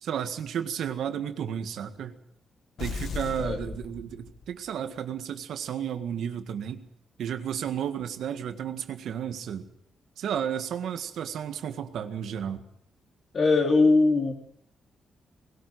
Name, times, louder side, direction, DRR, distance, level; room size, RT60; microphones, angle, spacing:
voice 1, 0.0-2.1 2.8-6.8 7.2-9.7 10.2-12.6, right 9 dB, 75° right, 8 dB, 1.8 m, -33 dB
sound 1, 2.8-4.7, left 4 dB, 60° left, 2.3 m, -36 dB
voice 2, 13.3-14.3, left 3 dB, 40° left, 3 dB, 3.7 m, -21 dB
20.5 x 18.5 x 8.0 m, 0.71 s
wide cardioid pair, 155°, 0 cm